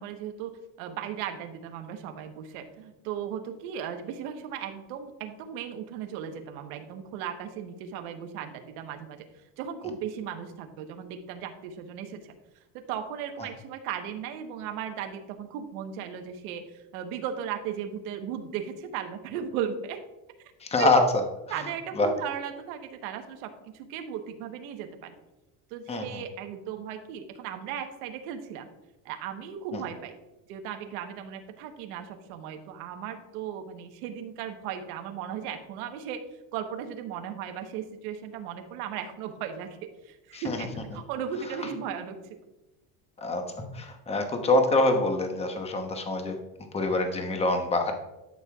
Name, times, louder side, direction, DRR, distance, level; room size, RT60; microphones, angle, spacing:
voice 1, 0.0-12.4 12.7-20.0 20.8-21.0 21.5-25.2 25.7-28.7 29.0-30.1 30.5-36.2 36.5-42.2, right 8 dB, 85° right, 5 dB, 1.2 m, -36 dB
voice 2, 20.6-21.0 22.0-22.1 25.9-26.2 40.3-40.6 43.2-43.4 43.7-46.4 46.7-47.9, left 2 dB, 15° left, 5 dB, 0.9 m, -25 dB
11.5 x 6.5 x 2.4 m, 1.0 s
cardioid pair, 130°, 43 cm